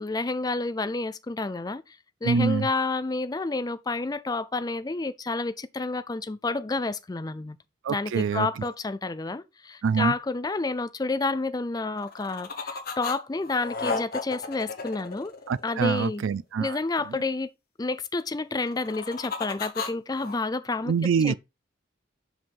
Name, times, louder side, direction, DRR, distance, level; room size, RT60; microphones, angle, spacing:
voice 1, 0.0-7.6 7.9-15.3 15.6-16.2 16.6-17.5 17.8-20.9 21.2-21.3, left 3 dB, 20° left, 0.4 m, -30 dB
voice 2, 2.2-2.7 7.8-8.5 9.8-10.1 15.5-16.8 20.9-21.3, right 6 dB, 85° right, 0.4 m, -25 dB
sound 1, 12.0-13.2 13.4-15.9 18.6-20.4, left 4 dB, 50° left, 1.2 m, -33 dB
5.5 x 5.1 x 4.6 m
head